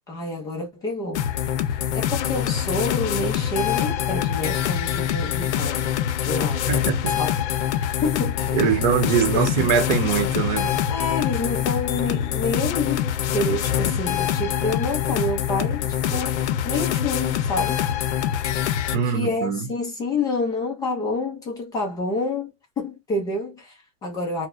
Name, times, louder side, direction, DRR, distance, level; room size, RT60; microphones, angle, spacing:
voice 1, 0.1-1.2 1.7-6.0 6.3-6.8 7.2-7.3 7.9-8.8 9.3-9.7 10.9-15.9 16.1-17.9 19.0-24.5, left 2 dB, 10° left, 0.4 m, -28 dB
sound 1, 1.1-19.0, left 10 dB, 65° left, 0.7 m, -25 dB
voice 2, 6.7-7.2 8.5-10.8 18.9-19.7, right 7 dB, 40° right, 1.0 m, -22 dB
4.6 x 2.1 x 2.5 m
supercardioid pair, 175°, 37 cm